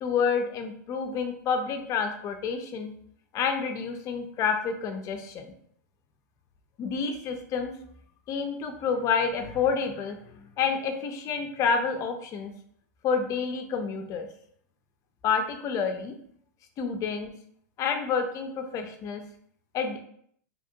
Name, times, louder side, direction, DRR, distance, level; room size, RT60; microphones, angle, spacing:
voice 1, 0.0-2.9 3.3-5.5 6.8-7.7 8.3-12.5 13.0-14.3 15.2-16.1 16.8-17.3 17.8-19.2 19.7-20.0, left 6 dB, 35° left, 5 dB, 0.5 m, -29 dB
2.9 x 2.6 x 2.5 m, 0.65 s
hypercardioid pair, 125°, 10 cm